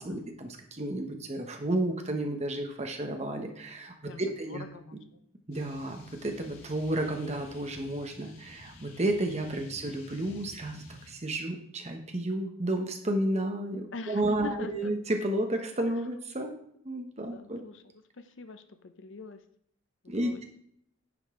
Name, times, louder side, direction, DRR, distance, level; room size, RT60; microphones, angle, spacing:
voice 1, 0.0-4.6 4.9-5.0 5.5-16.5 16.8-17.6 20.1-20.4, right 1 dB, 30° right, 4 dB, 1.0 m, -32 dB
voice 2, 4.5-5.0 13.9-14.9 17.2-17.8 18.2-19.4 20.0-20.4, left 3 dB, 60° left, 9 dB, 0.6 m, -43 dB
sound 1, 5.5-11.1, left 2 dB, 85° left, 1.3 m, -51 dB
9.7 x 5.3 x 3.7 m, 0.70 s
head